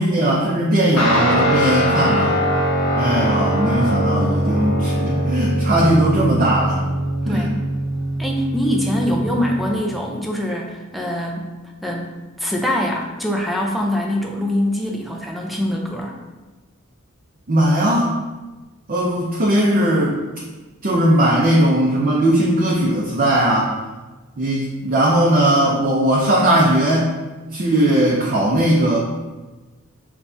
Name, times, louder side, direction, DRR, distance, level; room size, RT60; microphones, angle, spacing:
voice 1, 0.0-2.4 3.0-6.8 7.2-7.5 17.5-18.1 18.9-20.2 20.8-23.7 24.4-27.2 27.5-29.0, right 1 dB, 40° right, -5 dB, 0.6 m, -18 dB
Guitar, 1.0-9.8, equal, 80° left, 1.2 m, -21 dB
voice 2, 7.3-7.6 8.2-11.5 11.8-12.1 12.4-16.2, left 1 dB, ahead, -1 dB, 0.5 m, -23 dB
6.8 x 2.3 x 2.7 m, 1.2 s
head